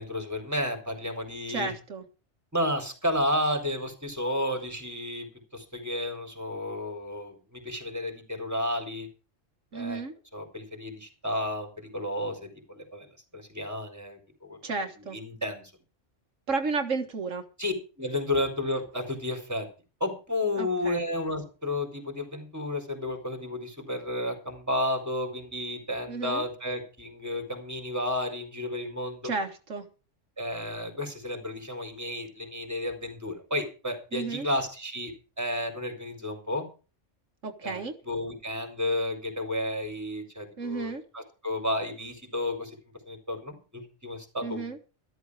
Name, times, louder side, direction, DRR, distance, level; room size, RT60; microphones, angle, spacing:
voice 1, 0.0-1.7 2.5-9.1 9.7-10.0 10.3-13.1 13.3-14.6 15.1-15.7 17.6-19.7 20.0-29.3 30.4-36.7 37.6-42.8 43.1-44.7, left 1 dB, 15° right, 5 dB, 4.2 m, -32 dB
voice 2, 1.5-2.0 9.7-10.1 14.6-15.2 16.5-17.4 20.6-21.0 26.1-26.4 29.2-29.9 34.1-34.5 37.4-37.9 40.6-41.0 44.4-44.8, right 4 dB, 90° right, 4 dB, 2.0 m, -32 dB
13.5 x 13.0 x 4.9 m, 0.35 s
omnidirectional pair, 1.3 m